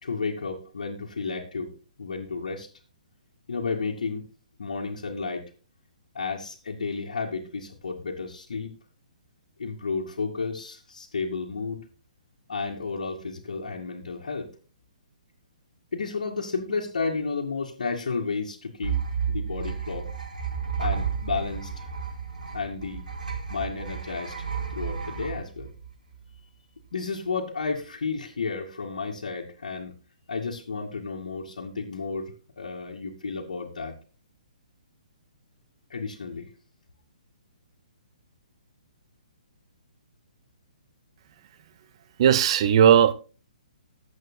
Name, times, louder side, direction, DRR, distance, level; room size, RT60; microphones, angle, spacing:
voice 1, 0.0-1.7 2.0-2.7 3.5-4.3 4.6-5.5 6.1-8.7 9.6-11.8 12.5-14.5 15.9-19.0 19.3-20.1 20.8-21.9 22.5-23.1 23.5-24.4 24.7-25.7 26.9-30.0 30.3-33.9 35.9-36.5, left 4 dB, 65° left, 2.3 m, -32 dB
sound 1, 18.8-26.3, right 7 dB, 80° right, 4.5 m, -32 dB
voice 2, 42.2-43.1, right 9 dB, 45° right, 0.9 m, -17 dB
20.0 x 8.1 x 2.3 m
figure-of-eight pair, 130°, 4 cm